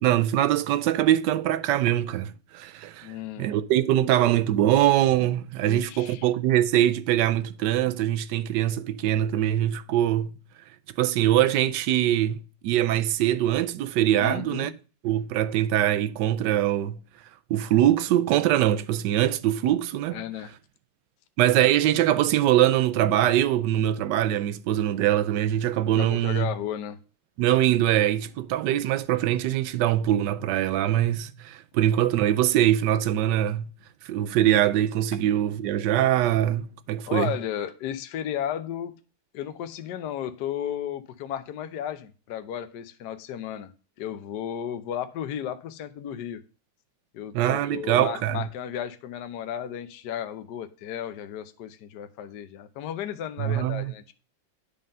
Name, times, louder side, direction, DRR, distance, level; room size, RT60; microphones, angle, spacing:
voice 1, 0.0-3.1 3.4-10.3 11.0-14.7 15.0-17.0 17.5-20.2 21.4-26.5 27.4-33.7 34.1-37.3 47.3-48.5 53.4-53.9, right 12 dB, 75° right, 1.1 m, -23 dB
voice 2, 3.0-3.5 5.6-6.3 14.2-14.7 20.1-20.5 26.0-27.0 37.1-38.9 39.3-43.7 44.0-46.4 47.1-54.1, left 10 dB, 65° left, 1.2 m, -34 dB
10.0 x 3.8 x 5.3 m
omnidirectional pair, 2.1 m